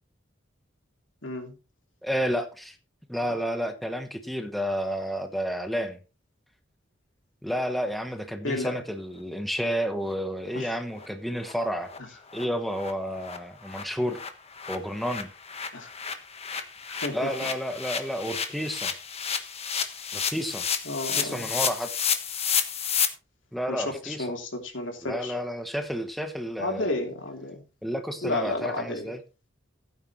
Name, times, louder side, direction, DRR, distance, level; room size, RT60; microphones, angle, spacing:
voice 1, 1.2-1.5 8.4-8.8 10.5-10.7 15.7-15.9 17.0-17.5 20.8-21.5 23.7-25.3 26.6-27.6 28.2-29.1, left 2 dB, 80° left, 3 dB, 3.1 m, -32 dB
voice 2, 2.0-2.8 3.1-6.0 7.4-11.9 12.3-14.2 14.7-15.3 17.1-18.9 20.1-20.7 21.1-22.1 23.5-24.2 25.0-26.9 27.8-29.2, equal, ahead, 6 dB, 1.1 m, -31 dB
sound 1, 10.1-10.2 10.5-10.6 11.0-11.1 11.4-11.5 11.9-12.0 12.3-12.4 12.8-12.9 13.2-23.1, left 7 dB, 35° left, 1.3 m, -31 dB
15.5 x 9.4 x 3.2 m, 0.32 s
head